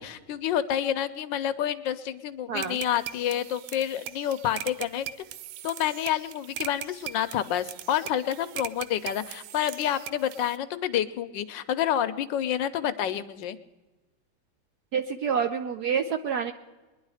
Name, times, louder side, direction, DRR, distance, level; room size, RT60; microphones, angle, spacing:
voice 1, 0.0-5.1 5.6-13.6, left 10 dB, 70° left, 11 dB, 1.2 m, -28 dB
sound 1, 2.6-10.6, right 12 dB, 85° right, 1.5 m, -40 dB
voice 2, 14.9-16.5, right 7 dB, 65° right, 8 dB, 1.0 m, -28 dB
21.5 x 11.0 x 4.8 m, 1.2 s
omnidirectional pair, 2.2 m